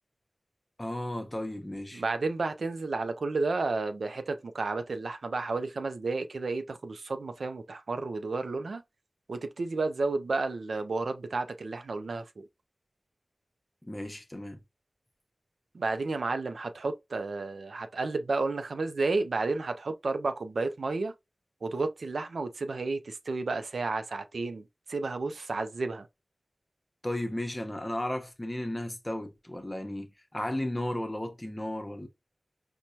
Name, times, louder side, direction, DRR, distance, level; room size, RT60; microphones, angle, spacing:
voice 1, 0.8-2.0 13.8-14.6 27.0-32.1, left 1 dB, 25° left, 0.8 m, -34 dB
voice 2, 1.9-8.8 9.3-12.5 15.7-21.1 21.6-24.6 24.9-26.1, right 3 dB, 90° right, 0.4 m, -32 dB
4.4 x 2.2 x 2.7 m
wide cardioid pair, 50°, 0 cm